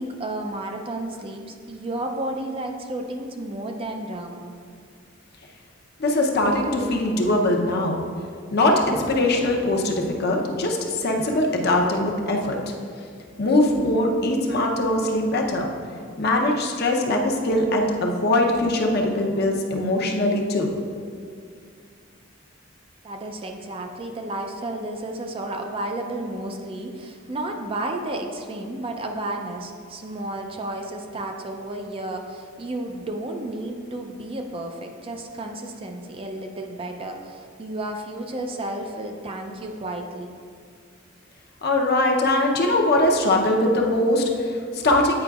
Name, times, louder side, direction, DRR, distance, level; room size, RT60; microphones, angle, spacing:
voice 1, 0.0-4.5 23.0-40.3, right 1 dB, 30° right, 3 dB, 0.4 m, -32 dB
voice 2, 6.0-8.0 8.5-12.7 13.4-15.7 16.2-20.7 41.6-45.2, left 1 dB, 55° left, 1 dB, 0.7 m, -21 dB
8.6 x 4.8 x 2.3 m, 2.2 s
head